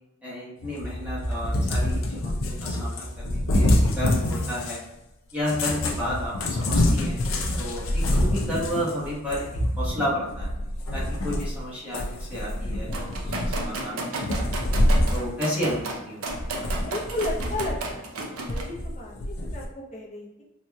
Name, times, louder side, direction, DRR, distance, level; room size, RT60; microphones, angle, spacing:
voice 1, 0.2-4.8 5.3-7.3 7.6-10.5 10.9-14.4 15.1-16.5, equal, 10° right, -8 dB, 1.1 m, -32 dB
Cat, 0.6-4.9 5.4-11.6 11.9-13.8 14.2-15.3 15.6-15.7 16.3-17.9 18.5-19.6, left 1 dB, 70° left, 0.5 m, -26 dB
sound 1, 12.9-18.6, right 2 dB, 85° right, 0.6 m, -33 dB
voice 2, 16.8-20.4, left 1 dB, 35° left, -3 dB, 0.7 m, -34 dB
3.5 x 2.8 x 2.2 m, 0.94 s
head